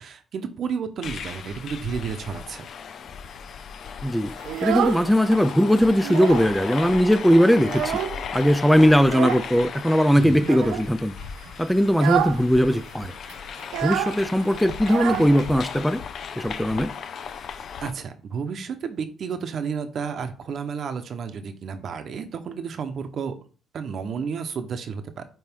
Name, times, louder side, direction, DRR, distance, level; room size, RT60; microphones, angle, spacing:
voice 1, 0.0-2.7 10.1-10.5 17.8-23.3 23.7-25.2, right 6 dB, 60° right, 0.9 m, -31 dB
sound 1, 1.0-17.9, left 7 dB, 65° left, 0.5 m, -36 dB
voice 2, 4.0-4.3 4.6-8.0 8.3-11.1 11.6-13.1 13.8-16.0 16.4-16.9, equal, ahead, 0.4 m, -19 dB
Child speech kid speaking, 4.4-5.4 5.8-6.6 6.8-6.9 7.3-8.4 9.0-9.5 10.4-10.9 11.3-11.5 11.9-12.4 12.7-12.8 13.0-15.8, right 11 dB, 90° right, 0.4 m, -28 dB
9.2 x 3.1 x 3.6 m
cardioid pair, 90°, 0 cm